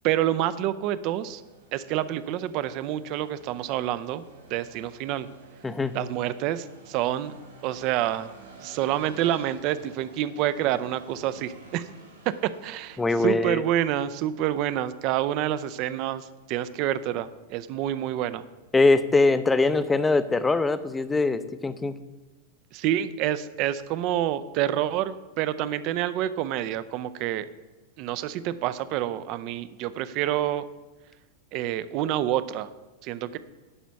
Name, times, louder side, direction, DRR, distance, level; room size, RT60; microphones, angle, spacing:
voice 1, 0.0-1.4 1.7-4.2 4.5-5.3 5.9-7.4 7.6-8.3 8.6-11.9 12.4-18.4 22.7-27.5 28.0-30.7 31.5-32.7 33.0-33.4, right 12 dB, 40° right, 15 dB, 0.5 m, -28 dB
sound 1, 1.0-20.9, right 3 dB, 65° right, 2.9 m, -52 dB
voice 2, 5.6-6.0 13.0-13.6 18.7-22.0, left 3 dB, 10° left, 13 dB, 0.5 m, -22 dB
11.0 x 5.1 x 6.9 m, 1.2 s
figure-of-eight pair, 90°, 0 cm